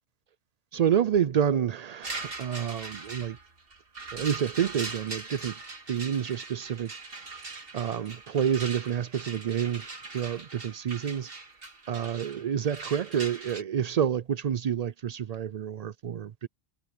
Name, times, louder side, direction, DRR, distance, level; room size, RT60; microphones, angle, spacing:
voice 1, 0.7-3.4 4.1-5.6 5.9-6.9 7.7-9.9 10.1-11.3 11.9-16.5, right 8 dB, 85° right, 0.3 m, -28 dB
sound 1, 2.0-13.6, right 3 dB, 50° right, 2.3 m, -41 dB
omnidirectional pair, 1.3 m